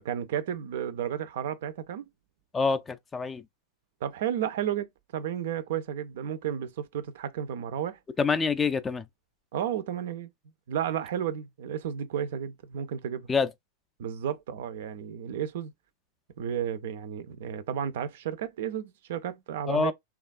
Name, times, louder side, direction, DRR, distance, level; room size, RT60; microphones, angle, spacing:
voice 1, 0.0-2.1 4.0-4.9 5.1-8.0 9.5-10.3 10.7-13.3 14.0-15.7 16.4-19.9, right 9 dB, 55° right, 0.4 m, -32 dB
voice 2, 2.5-3.4 8.2-9.0 13.3-13.5 19.7-19.9, left 5 dB, 15° left, 0.3 m, -26 dB
3.2 x 2.3 x 2.3 m
figure-of-eight pair, 90°, 0 cm